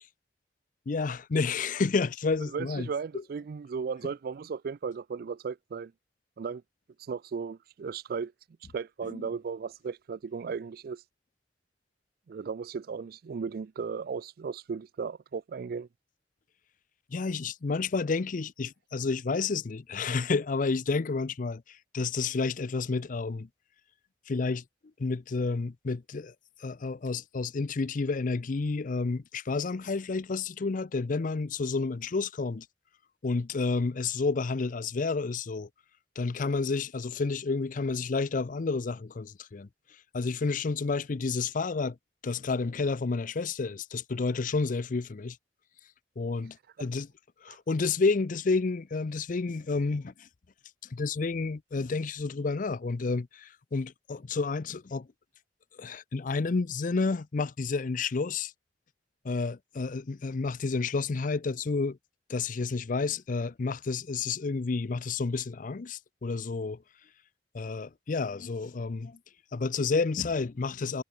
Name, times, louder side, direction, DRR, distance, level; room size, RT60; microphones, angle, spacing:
voice 1, 0.9-2.9 3.1-3.2 9.1-9.2 17.1-23.5 24.3-24.6 25.0-26.3 26.6-32.6 33.2-35.7 36.2-39.7 40.1-42.0 42.2-45.4 46.2-47.1 47.4-50.3 50.9-55.1 55.8-58.5 59.2-62.0 62.3-66.8 67.5-69.2 69.5-71.0, left 4 dB, 50° left, 0.5 m, -30 dB
voice 2, 2.5-5.9 6.4-6.6 7.1-8.3 8.7-11.0 12.3-15.9 47.5-47.6, right 5 dB, 55° right, 0.4 m, -36 dB
head